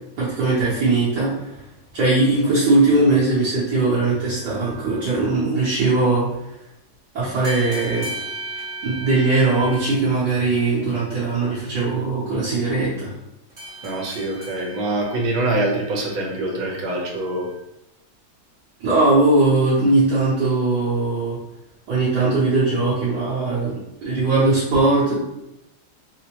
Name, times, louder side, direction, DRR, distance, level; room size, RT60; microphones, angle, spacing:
voice 1, 0.2-1.3 1.9-6.3 7.1-8.1 8.8-13.1 18.8-21.4 21.9-23.7 24.0-25.1, right 3 dB, 65° right, -9 dB, 1.3 m, -19 dB
sound 1, 4.1-5.2 7.4-9.9 13.5-17.5, right 2 dB, 30° right, 0.9 m, -37 dB
voice 2, 13.8-17.5, right 2 dB, 80° right, 0 dB, 1.5 m, -24 dB
4.2 x 2.1 x 2.8 m, 0.90 s
omnidirectional pair, 2.1 m